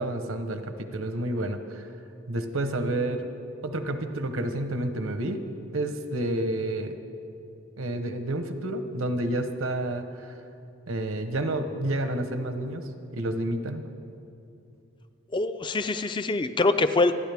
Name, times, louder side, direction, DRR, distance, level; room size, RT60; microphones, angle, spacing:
voice 1, 0.0-1.9 2.3-3.3 3.6-5.4 5.7-6.9 7.8-10.3 10.9-12.8 13.1-13.8, right 1 dB, 75° right, 8 dB, 1.0 m, -29 dB
voice 2, 15.3-17.1, left 2 dB, 20° left, 11 dB, 0.4 m, -24 dB
27.0 x 9.8 x 3.5 m, 2.6 s
head